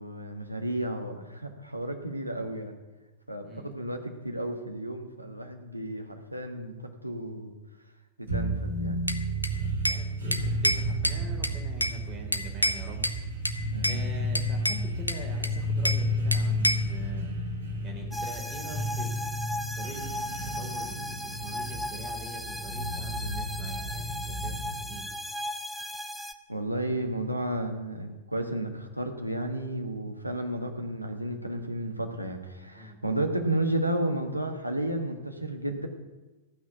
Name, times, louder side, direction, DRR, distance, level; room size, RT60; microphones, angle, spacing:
voice 1, 0.0-2.8 3.3-7.6 8.2-9.0 13.7-14.3 26.5-35.9, right 1 dB, 90° right, 4 dB, 1.5 m, -32 dB
sound 1, 8.3-25.1, equal, 65° right, 2.7 m, -32 dB
Bell / Glass, 9.1-10.0 10.3-12.0 12.3-13.2 13.4-14.0 14.3-16.0 16.3-16.9, equal, 90° left, 0.7 m, -29 dB
voice 2, 9.6-13.1 13.8-17.3 17.8-19.1 19.7-20.1 20.4-25.1 32.7-33.0, right 1 dB, 25° right, 2 dB, 3.3 m, -44 dB
sound 2, 18.1-26.3, equal, ahead, 0.8 m, -36 dB
15.0 x 6.2 x 9.2 m, 1.1 s
figure-of-eight pair, 100°, 0 cm